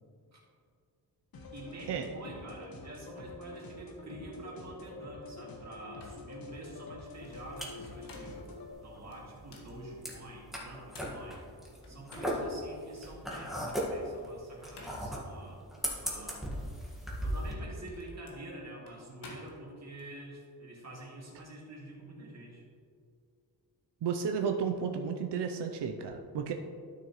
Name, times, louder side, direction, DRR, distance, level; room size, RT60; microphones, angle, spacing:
sound 1, 1.3-8.7, left 2 dB, 60° left, 1.2 m, -47 dB
voice 1, 1.5-8.5 8.8-11.4 11.9-15.6 16.0-16.4 17.2-22.6, right 1 dB, 40° right, -3 dB, 2.3 m, -47 dB
sound 2, 5.6-5.7 6.0-6.2 7.7-8.5 9.1-9.7 10.5-12.6 13.1-13.2 14.5-15.2 15.9-16.1 17.3-20.1, left 3 dB, 85° left, 1.6 m, -53 dB
sound 3, 7.1-17.5, equal, ahead, 1.6 m, -38 dB
voice 2, 24.0-26.5, right 6 dB, 85° right, 5 dB, 0.7 m, -33 dB
12.0 x 6.5 x 3.1 m, 2.2 s
wide cardioid pair, 120°, 40 cm